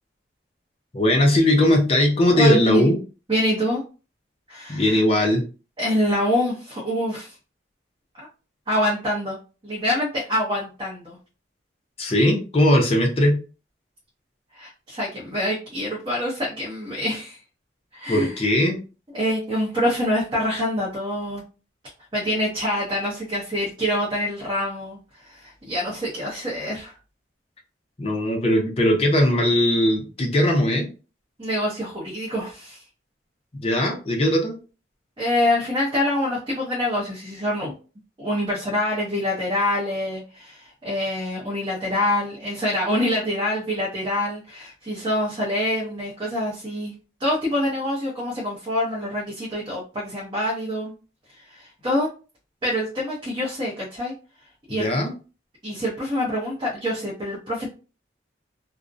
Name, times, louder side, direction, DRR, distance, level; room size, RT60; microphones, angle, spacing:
voice 1, 0.9-3.0 4.7-5.4 12.0-13.4 18.1-18.8 28.0-30.9 33.5-34.6 54.7-55.1, left 1 dB, 30° left, 2 dB, 0.5 m, -19 dB
voice 2, 2.3-2.9 3.3-3.8 4.5-5.0 5.8-7.3 8.2-8.3 8.7-9.4 9.6-11.2 14.5-17.4 17.9-18.3 19.1-21.4 22.1-26.9 31.4-32.8 35.2-37.7 38.2-46.9 47.2-50.9 51.4-52.1 52.6-54.1 54.7-54.9 55.6-57.7, left 1 dB, 25° right, -5 dB, 0.6 m, -25 dB
2.5 x 2.0 x 2.5 m, 0.34 s
head